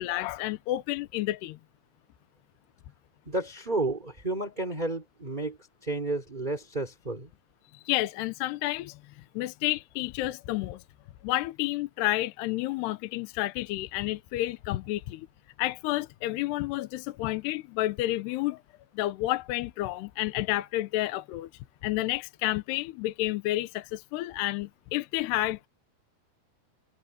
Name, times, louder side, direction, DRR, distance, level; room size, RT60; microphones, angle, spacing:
voice 1, 0.0-1.6 7.7-9.0 9.4-10.8 11.2-15.3 15.6-18.6 18.9-21.5 21.8-25.7, left 16 dB, 80° left, 2.9 m, -30 dB
voice 2, 3.3-7.3, right 2 dB, 10° right, 3.7 m, -32 dB
omnidirectional pair, 4.9 m